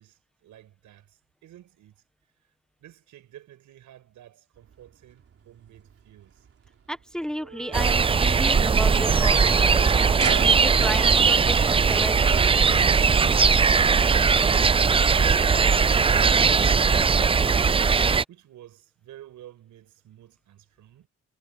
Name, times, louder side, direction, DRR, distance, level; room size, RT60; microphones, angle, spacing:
voice 1, 0.0-1.9 2.8-6.5 14.7-16.6 16.9-17.8 18.3-21.1, right 12 dB, 75° right, 6.3 m, -50 dB
sound 1, 4.6-12.9, right 7 dB, 50° right, 3.6 m, -40 dB
voice 2, 6.9-12.7, equal, ahead, 1.4 m, -34 dB
sound 2, 7.7-18.2, right 5 dB, 20° right, 0.4 m, -19 dB
cardioid pair, 90°, 30 cm